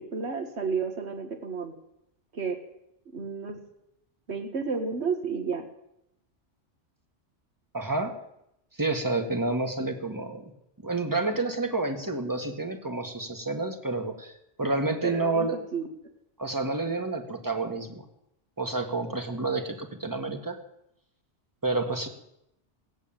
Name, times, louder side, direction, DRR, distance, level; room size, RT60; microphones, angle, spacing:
voice 1, 0.0-1.7 2.3-2.6 3.1-3.6 4.3-5.6 15.0-15.9, right 5 dB, 65° right, 5 dB, 1.9 m, -31 dB
voice 2, 7.7-8.1 8.7-10.4 10.8-15.6 16.4-17.9 18.6-20.6 21.6-22.1, right 3 dB, 15° right, 5 dB, 1.6 m, -29 dB
17.0 x 8.3 x 8.9 m, 0.82 s
omnidirectional pair, 1.2 m